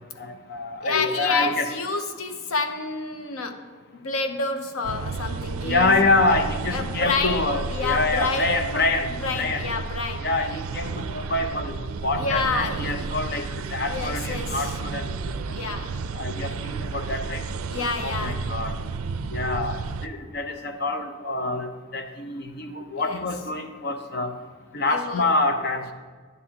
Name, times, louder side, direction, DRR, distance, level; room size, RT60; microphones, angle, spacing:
voice 1, 0.2-1.7 5.6-9.6 10.2-11.8 12.0-13.4 13.7-15.0 16.1-17.4 18.0-18.7 19.3-19.8 20.0-24.3 24.7-25.9, left 2 dB, 45° left, 6 dB, 0.7 m, -26 dB
voice 2, 0.8-3.7 3.9-6.0 6.7-8.9 9.2-10.3 12.2-12.9 13.9-14.8 15.5-16.0 17.7-18.5 23.0-23.2 24.9-25.3, left 4 dB, 80° left, 7 dB, 0.7 m, -29 dB
sound 1, 4.8-20.1, right 4 dB, 80° right, 0.4 m, -32 dB
11.0 x 9.9 x 2.9 m, 1.6 s
head